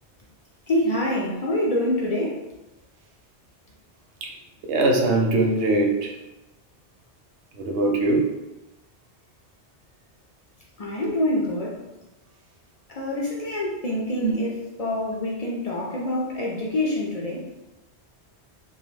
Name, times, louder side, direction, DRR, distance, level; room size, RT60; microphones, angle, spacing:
voice 1, 0.7-2.4 10.8-11.8 12.9-17.5, left 1 dB, 55° left, -4 dB, 0.4 m, -26 dB
voice 2, 4.7-6.1 7.6-8.2 14.2-14.3, right 2 dB, 80° right, 1 dB, 0.9 m, -21 dB
2.5 x 2.3 x 3.2 m, 0.96 s
omnidirectional pair, 1.2 m